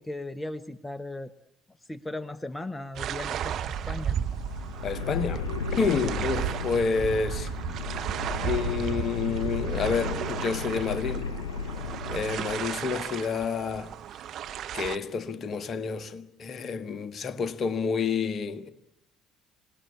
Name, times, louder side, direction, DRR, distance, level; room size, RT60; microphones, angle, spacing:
voice 1, 0.0-1.3 1.9-4.2, left 2 dB, 15° left, 1.1 m, -37 dB
sound 1, 2.9-15.0, right 9 dB, 55° right, 1.1 m, -34 dB
sound 2, 3.5-13.0, left 5 dB, 80° left, 1.3 m, -35 dB
voice 2, 4.8-5.5 5.8-7.5 8.4-11.3 12.1-13.9 14.7-18.7, left 5 dB, 40° left, 1.6 m, -29 dB
26.5 x 19.5 x 8.5 m
figure-of-eight pair, 50°, 0 cm